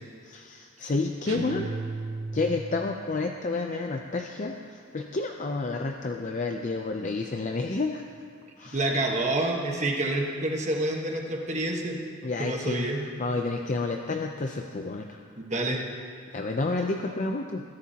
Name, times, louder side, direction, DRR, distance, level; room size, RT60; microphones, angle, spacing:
voice 1, 0.2-1.7 2.3-8.0 8.6-8.9 12.2-15.2 16.3-17.6, left 3 dB, 35° left, 3 dB, 0.5 m, -30 dB
sound 1, 1.3-3.0, right 3 dB, 85° right, 1.1 m, -35 dB
voice 2, 8.7-12.0 12.4-13.0 15.4-15.8, right 2 dB, 35° right, 1 dB, 1.3 m, -28 dB
21.0 x 12.0 x 2.9 m, 2.2 s
head